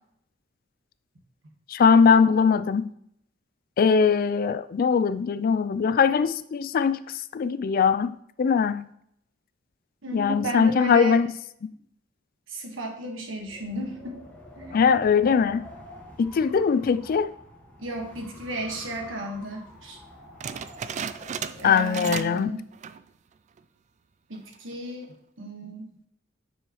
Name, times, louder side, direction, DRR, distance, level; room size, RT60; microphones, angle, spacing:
voice 1, 1.7-2.9 3.8-7.0 7.3-8.9 10.1-11.3 14.7-15.6 16.2-17.3 21.6-22.6, left 6 dB, 50° left, 0.3 m, -21 dB
voice 2, 10.0-11.2 12.5-14.2 14.6-14.8 17.8-20.0 21.6-22.6 24.3-25.9, right 1 dB, 85° right, 1.4 m, -34 dB
Wind, 13.4-22.1, left 1 dB, 10° left, 1.3 m, -47 dB
sound 1, 20.4-22.5 22.7-23.1 23.6-23.7 24.3-24.7, right 7 dB, 40° right, 0.3 m, -35 dB
9.1 x 4.7 x 3.1 m
head